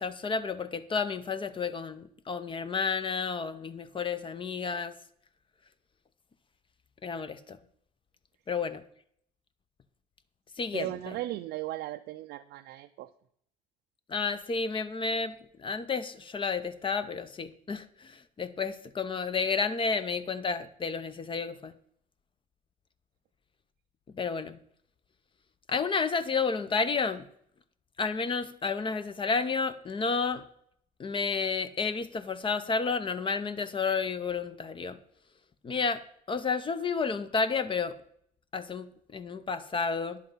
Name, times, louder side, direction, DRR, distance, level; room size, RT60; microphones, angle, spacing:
voice 1, 0.0-4.9 7.0-7.6 8.5-8.8 10.6-11.2 14.1-21.7 24.1-24.6 25.7-27.3 28.0-30.4 31.0-35.0 35.6-38.0 38.5-40.2, left 5 dB, 30° left, 13 dB, 0.7 m, -31 dB
voice 2, 10.7-13.1, right 15 dB, 75° right, 6 dB, 0.5 m, -37 dB
10.0 x 7.5 x 5.6 m, 0.69 s
cardioid pair, 110°, 17 cm